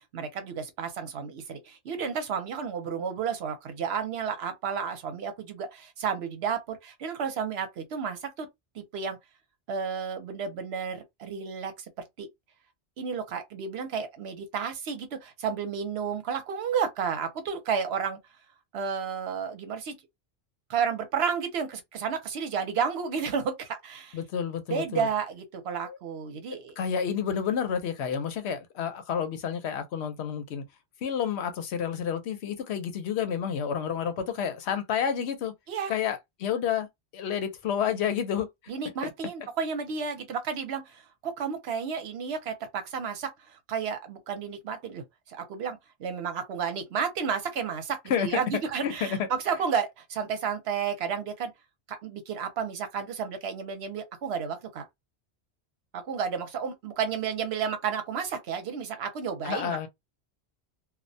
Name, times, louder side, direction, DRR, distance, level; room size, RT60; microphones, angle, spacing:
voice 1, 0.1-8.5 8.7-9.2 9.7-11.7 12.2-12.3 13.0-18.2 18.7-20.0 20.7-24.2 24.7-26.8 35.7-35.9 38.7-51.5 51.9-54.8 55.9-59.9, right 6 dB, 75° right, 0.9 m, -32 dB
voice 2, 24.1-25.1 25.8-26.0 26.8-30.6 31.0-35.5 35.9-36.9 37.1-38.5 48.1-48.3 48.8-49.3 59.4-59.9, left 8 dB, 80° left, 0.9 m, -30 dB
2.3 x 2.1 x 2.6 m
omnidirectional pair, 1.1 m